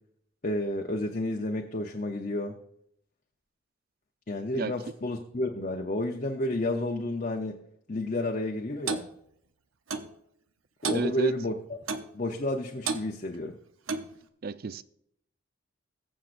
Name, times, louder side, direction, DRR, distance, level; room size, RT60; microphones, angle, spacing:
voice 1, 0.4-2.6 4.3-7.6 7.9-9.1 10.8-11.5 12.1-13.6, left 1 dB, 40° left, 0.7 m, -31 dB
Clock, 8.9-9.1 9.9-10.1 10.8-11.1 11.9-12.1 12.9-13.1 13.9-14.1, right 4 dB, 85° right, 0.8 m, -31 dB
voice 2, 10.9-11.3 14.4-14.8, right 3 dB, 50° right, 0.4 m, -31 dB
21.0 x 7.3 x 2.6 m
head